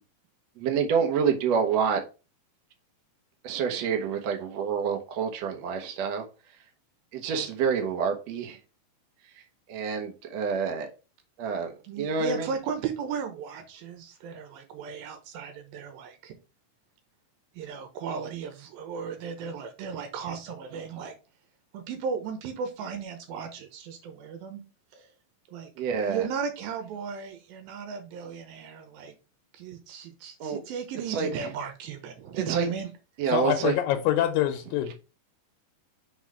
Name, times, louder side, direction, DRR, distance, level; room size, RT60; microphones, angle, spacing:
voice 1, 0.6-2.0 3.4-6.3 7.1-8.6 9.7-10.9 11.4-12.5 25.8-26.3 30.4-30.6 31.1-31.5 32.3-32.7 33.2-33.7, right 6 dB, 70° right, 1.7 m, -27 dB
voice 2, 11.8-16.3 17.5-21.1 21.7-24.6 24.9-25.1 25.5-25.7 26.1-29.1 29.5-32.9, right 6 dB, 85° right, 2.7 m, -35 dB
voice 3, 33.3-34.9, left 12 dB, 80° left, 2.3 m, -25 dB
5.5 x 4.3 x 4.7 m
omnidirectional pair, 4.2 m